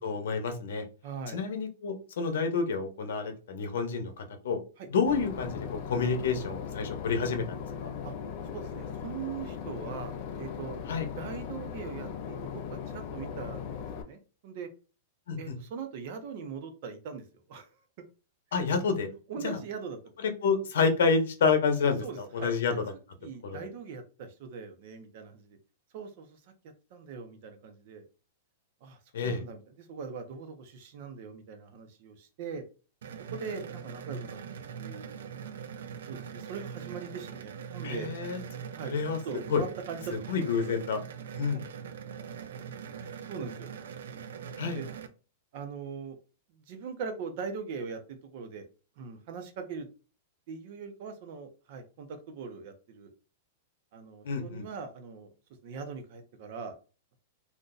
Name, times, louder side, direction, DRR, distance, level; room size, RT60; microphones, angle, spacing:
voice 1, 0.0-0.8 1.3-4.6 4.9-7.9 10.9-11.1 15.3-15.5 18.5-19.1 19.4-19.6 20.2-22.7 23.4-23.6 29.1-29.4 37.8-38.4 38.8-39.2 39.5-39.6 40.3-41.0 41.4-41.6 44.6-44.8 54.2-54.6, left 5 dB, 70° left, 6 dB, 0.8 m, -29 dB
voice 2, 1.0-1.4 4.8-4.9 8.0-8.1 8.5-10.8 11.2-14.7 15.4-17.7 18.5-18.6 19.3-20.2 22.0-22.8 23.2-25.6 25.9-26.4 26.9-28.0 28.8-32.6 33.3-34.4 34.8-35.3 36.1-38.1 38.7-38.9 39.2-40.0 40.3-40.8 43.0-43.7 44.6-44.9 45.5-46.2 46.5-48.6 49.0-49.9 50.5-53.1 53.9-55.3 55.6-56.7, right 5 dB, 40° right, 7 dB, 0.6 m, -41 dB
Boat Water vehicle / Engine, 5.1-14.0, left 7 dB, 35° left, 0.4 m, -38 dB
sound 1, 33.0-45.1, right 7 dB, 90° right, 0.4 m, -42 dB
2.6 x 2.1 x 3.8 m, 0.35 s
supercardioid pair, 175°, 0 cm